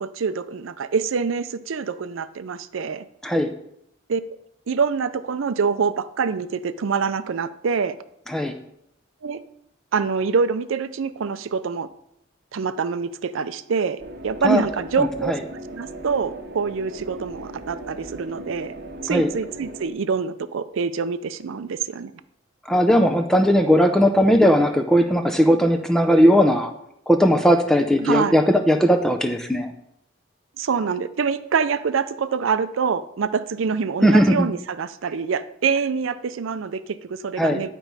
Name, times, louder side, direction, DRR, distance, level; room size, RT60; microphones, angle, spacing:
voice 1, 0.0-3.0 4.1-4.2 4.7-8.0 9.2-9.4 9.9-11.9 12.5-15.3 15.7-18.7 19.0-22.1 28.0-28.4 30.6-37.7, right 5 dB, 80° right, 13 dB, 0.5 m, -25 dB
sound 1, 14.0-19.9, right 1 dB, 50° right, 0.9 m, -38 dB
voice 2, 15.0-15.4 19.1-19.3 22.7-26.7 27.1-29.7 34.0-34.5 37.4-37.6, equal, 5° left, 5 dB, 0.5 m, -18 dB
10.0 x 4.5 x 5.3 m, 0.78 s
head